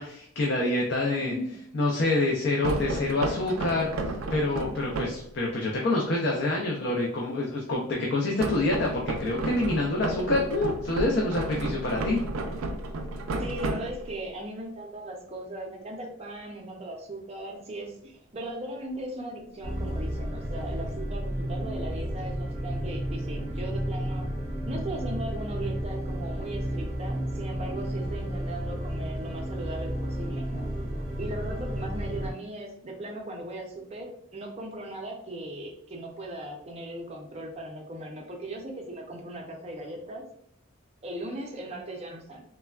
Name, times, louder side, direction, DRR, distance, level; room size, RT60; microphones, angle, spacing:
voice 1, 0.0-1.3 1.7-3.9 4.3-12.2, left 2 dB, 55° left, -2 dB, 0.4 m, -27 dB
voice 2, 1.2-1.6 13.4-24.3 24.7-30.7 31.2-40.2 41.0-42.4, right 1 dB, 30° right, 1 dB, 0.5 m, -38 dB
sound 1, 2.6-5.3 8.4-14.3, right 2 dB, 90° right, 0.4 m, -32 dB
sound 2, 19.6-32.3, equal, 5° left, 0.8 m, -32 dB
3.3 x 2.1 x 2.2 m, 0.71 s
head